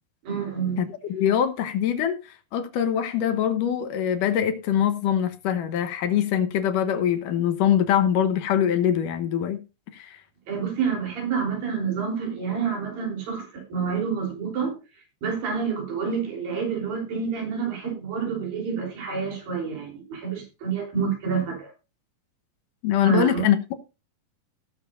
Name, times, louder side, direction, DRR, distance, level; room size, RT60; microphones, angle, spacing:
voice 1, 0.2-0.8 10.5-14.8 15.2-21.7 23.0-23.4, right 6 dB, 80° right, 5.2 m, -28 dB
voice 2, 0.8-2.2 2.5-9.6 9.9-10.2 22.8-23.7, left 9 dB, 75° left, 2.4 m, -23 dB
18.5 x 7.4 x 2.6 m
omnidirectional pair, 4.1 m